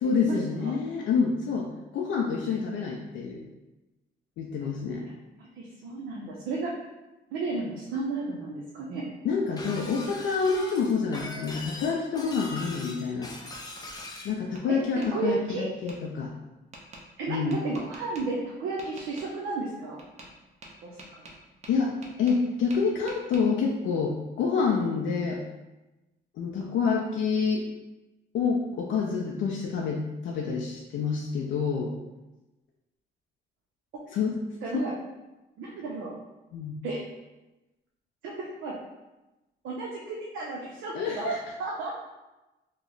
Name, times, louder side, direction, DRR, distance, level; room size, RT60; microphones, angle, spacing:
voice 1, 0.0-3.4 4.4-5.1 9.2-13.3 14.2-16.3 17.3-17.6 21.7-25.4 26.4-27.6 28.3-31.9 34.1-34.4 34.7-34.9 36.5-36.8 40.9-41.4, left 5 dB, 75° left, -1 dB, 0.4 m, -27 dB
voice 2, 5.4-6.7 7.3-9.1 15.0-15.7 17.2-20.0 20.8-21.2 34.6-34.9 35.6-36.1 36.8-37.1 38.2-38.8 39.6-41.3 41.6-41.9, right 3 dB, 85° right, -3 dB, 0.5 m, -33 dB
Shatter, 9.6-14.3, left 2 dB, 20° left, 0.5 m, -40 dB
Tap, 13.0-14.1 14.5-15.1 15.9-16.0 16.7-17.0 17.5-18.2 18.8-19.3 20.0-20.3 20.6-22.4 22.7-23.4, right 2 dB, 35° right, 0.7 m, -47 dB
3.0 x 2.0 x 3.8 m, 1.0 s
cardioid pair, 90°, 20 cm